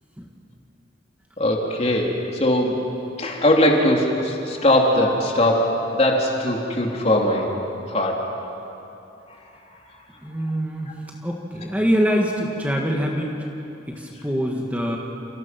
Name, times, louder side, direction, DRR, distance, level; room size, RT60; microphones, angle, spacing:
voice 1, 1.4-2.8 3.2-7.5 7.9-8.2, left 1 dB, 35° left, -1 dB, 3.5 m, -20 dB
voice 2, 10.2-10.9 11.2-13.4 13.9-15.0, equal, 10° right, -1 dB, 2.2 m, -24 dB
29.5 x 28.0 x 6.2 m, 2.9 s
head